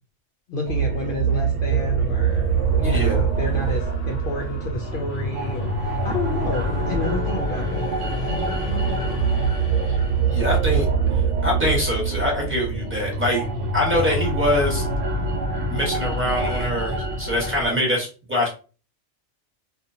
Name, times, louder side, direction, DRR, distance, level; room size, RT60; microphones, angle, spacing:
voice 1, 0.5-7.9 8.2-9.3, left 2 dB, 60° left, 0 dB, 0.6 m, -31 dB
sound 1, 0.7-17.7, right 4 dB, 80° right, 0.9 m, -24 dB
sound 2, 2.2-10.5, left 4 dB, 85° left, 0.9 m, -39 dB
voice 2, 2.8-3.2 9.9-10.0 10.3-10.8 11.1-13.4 13.7-14.9 15.7-18.5, left 1 dB, 10° right, -3 dB, 0.9 m, -24 dB
2.7 x 2.2 x 2.6 m, 0.35 s
omnidirectional pair, 1.3 m